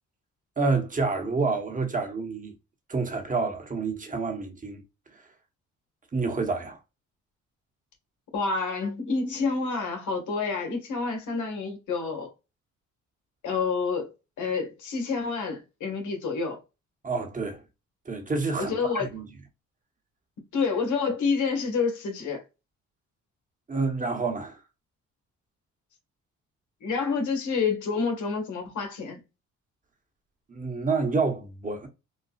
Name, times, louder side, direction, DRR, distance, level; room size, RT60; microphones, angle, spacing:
voice 1, 0.6-2.5 2.9-4.8 6.1-6.8 17.0-17.6 18.1-19.3 23.7-24.6 30.5-31.9, right 4 dB, 25° right, 1.1 m, -28 dB
voice 2, 8.3-12.3 13.4-14.1 14.4-16.6 18.6-19.1 20.5-22.4 26.8-29.2, left 4 dB, 75° left, 1.6 m, -28 dB
4.1 x 2.3 x 2.4 m
cardioid pair, 90°, 30 cm